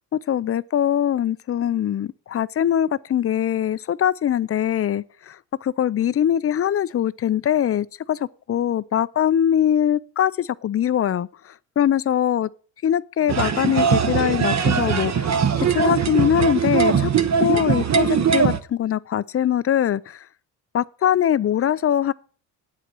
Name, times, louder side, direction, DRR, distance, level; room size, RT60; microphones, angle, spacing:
voice 1, 0.3-5.4 5.6-8.2 8.5-11.3 11.8-12.5 12.8-15.3 15.6-17.1 17.4-20.2 20.7-22.1, left 10 dB, 35° left, 0.5 m, -22 dB
sound 1, 13.3-18.6, right 7 dB, 40° right, 1.1 m, -20 dB
8.5 x 8.2 x 6.1 m
supercardioid pair, 70°, 43 cm